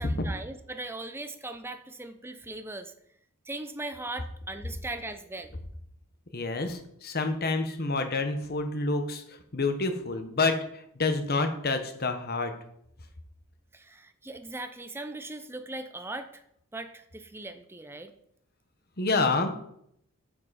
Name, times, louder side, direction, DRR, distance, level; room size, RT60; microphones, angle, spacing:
voice 1, 0.0-2.9 3.4-5.5 13.7-16.4 16.7-18.1, right 2 dB, 10° right, 9 dB, 0.6 m, -39 dB
voice 2, 6.3-10.6 11.0-12.5 19.0-19.5, left 3 dB, 45° left, 7 dB, 1.2 m, -28 dB
9.8 x 7.8 x 4.2 m, 0.72 s
head